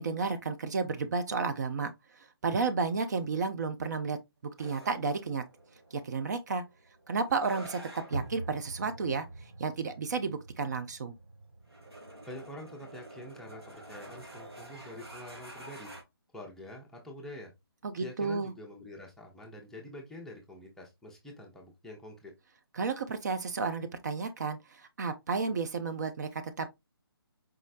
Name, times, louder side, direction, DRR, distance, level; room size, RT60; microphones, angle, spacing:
voice 1, 0.0-4.2 4.6-5.4 5.9-6.6 7.1-7.8 8.1-11.2 17.8-18.5 22.7-26.7, right 4 dB, 45° right, 0.5 m, -32 dB
sound 1, 4.6-16.0, right 2 dB, 85° right, 1.8 m, -46 dB
voice 2, 12.3-15.9 16.3-17.5 18.0-22.3, left 1 dB, 5° left, 0.7 m, -46 dB
4.8 x 3.1 x 2.5 m
figure-of-eight pair, 140°, 13 cm